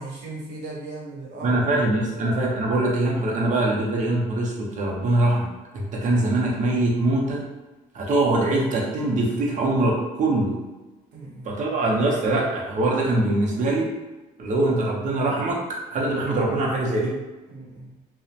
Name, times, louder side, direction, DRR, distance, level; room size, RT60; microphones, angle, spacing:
voice 1, 0.0-1.6 1.9-2.1 11.1-11.8 17.5-18.0, right 2 dB, 85° right, -3 dB, 0.8 m, -38 dB
voice 2, 1.4-7.4 7.9-10.6 11.4-13.9 14.4-15.6 15.9-17.1, right 2 dB, 45° right, -2 dB, 0.7 m, -23 dB
2.8 x 2.1 x 2.4 m, 1.1 s
cardioid pair, 110°, 17 cm